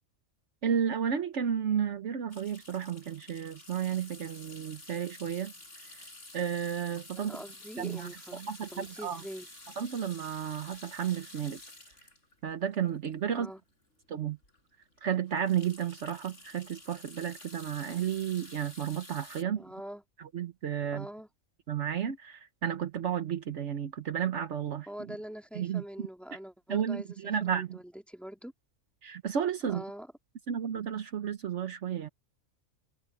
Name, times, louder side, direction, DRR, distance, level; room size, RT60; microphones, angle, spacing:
voice 1, 0.6-5.5 5.8-6.1 6.3-7.4 7.8-9.2 9.8-11.6 12.4-13.5 14.1-14.4 15.0-19.6 20.2-21.1 21.7-25.2 25.5-26.1 26.7-27.8 29.0-29.8 30.5-32.1, right 8 dB, 65° right, 1.2 m, -32 dB
sound 1, 2.3-13.6 14.1-14.2 14.4-14.6 14.9-19.4, left 2 dB, 70° left, 6.5 m, -51 dB
voice 2, 7.2-8.4 8.7-9.5 13.3-13.6 19.6-20.0 20.9-21.3 24.9-27.2 27.4-28.5 29.7-30.1, equal, ahead, 2.8 m, -43 dB
omnidirectional pair, 1.3 m